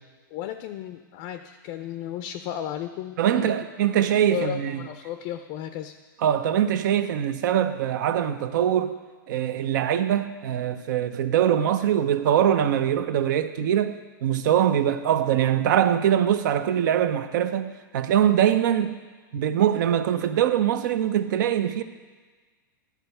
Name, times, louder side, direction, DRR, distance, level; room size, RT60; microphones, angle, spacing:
voice 1, 0.3-3.6 4.3-5.9, left 10 dB, 45° left, 0.5 m, -34 dB
voice 2, 3.2-4.8 6.2-9.0 9.3-19.0 19.3-21.8, right 10 dB, 60° right, 0.6 m, -23 dB
11.0 x 4.5 x 6.7 m
hypercardioid pair, 120°, 11 cm